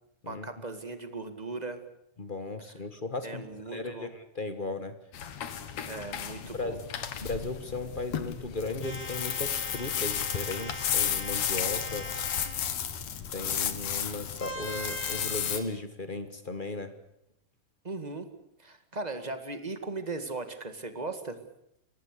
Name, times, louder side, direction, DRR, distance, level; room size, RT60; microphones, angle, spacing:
voice 1, 0.3-1.8 3.2-4.1 5.9-6.8 17.8-18.3 18.6-21.4, right 3 dB, 15° right, 9 dB, 1.5 m, -38 dB
voice 2, 2.2-3.4 3.7-4.9 6.5-6.8 7.2-12.1 13.3-16.9, left 2 dB, 45° left, 10 dB, 0.6 m, -36 dB
sound 1, 5.1-15.6, left 9 dB, 65° left, 2.6 m, -33 dB
sound 2, 8.8-12.7 14.4-15.6, left 1 dB, 90° left, 6.6 m, -40 dB
24.0 x 18.5 x 8.4 m, 0.77 s
omnidirectional pair, 3.5 m